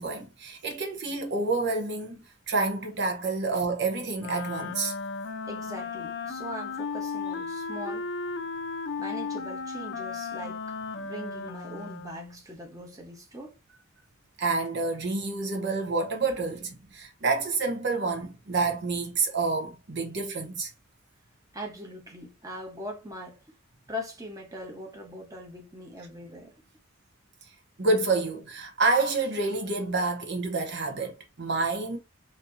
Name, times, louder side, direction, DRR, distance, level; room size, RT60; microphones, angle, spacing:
voice 1, 0.0-2.2 2.5-4.9 14.4-20.7 27.8-32.0, right 3 dB, 60° right, 0.8 m, -28 dB
Wind instrument woodwind instrument, 4.2-12.4, left 4 dB, 60° left, 0.6 m, -35 dB
voice 2, 5.5-8.1 9.0-13.6 21.5-23.4 23.9-26.6, equal, 15° right, 1.0 m, -41 dB
4.3 x 2.7 x 2.6 m
head